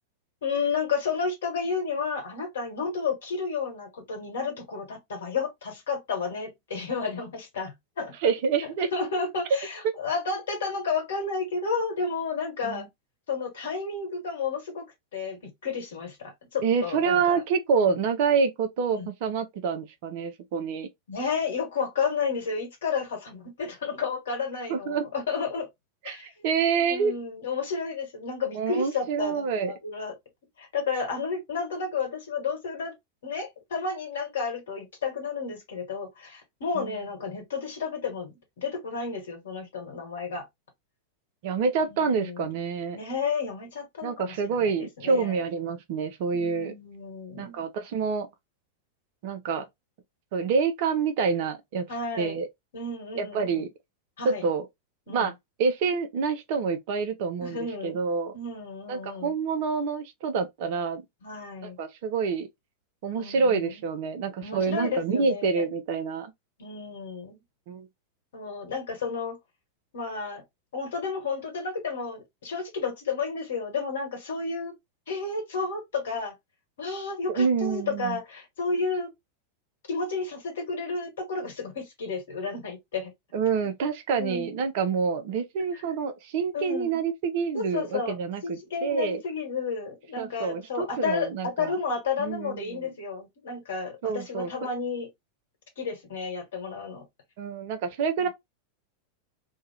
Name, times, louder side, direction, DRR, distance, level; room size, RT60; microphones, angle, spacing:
voice 1, 0.4-8.1 8.9-12.9 13.3-14.8 15.1-17.4 17.8-17.9 18.9-19.1 21.1-25.7 26.0-26.3 26.7-30.1 30.6-32.9 33.2-40.4 41.9-42.5 42.9-45.4 46.3-47.6 51.9-52.4 52.7-53.6 54.2-54.5 55.1-55.3 57.4-58.0 58.3-59.3 61.2-61.8 63.1-63.8 64.4-65.6 66.6-67.4 68.3-69.4 69.9-70.4 70.7-74.7 75.1-76.3 76.8-79.1 79.9-83.1 84.2-84.6 85.7-85.8 86.5-87.0 87.5-88.2 88.4-95.1 95.8-97.0 98.2-98.3, left 5 dB, 60° left, 1.3 m, -32 dB
voice 2, 8.2-8.9 12.6-12.8 16.6-20.9 24.7-25.0 26.1-27.1 28.5-29.7 36.8-36.9 41.4-43.0 44.0-46.7 47.4-48.3 49.2-49.6 50.3-51.8 52.2-52.5 53.2-53.7 54.2-54.7 55.1-55.3 55.6-58.3 58.9-61.0 61.6-62.5 63.0-66.3 67.7-67.9 77.4-78.2 83.3-89.2 90.2-91.7 92.2-92.8 94.0-94.5 97.4-98.3, right 5 dB, 50° right, 0.6 m, -27 dB
2.7 x 2.3 x 3.2 m
figure-of-eight pair, 90°, 0 cm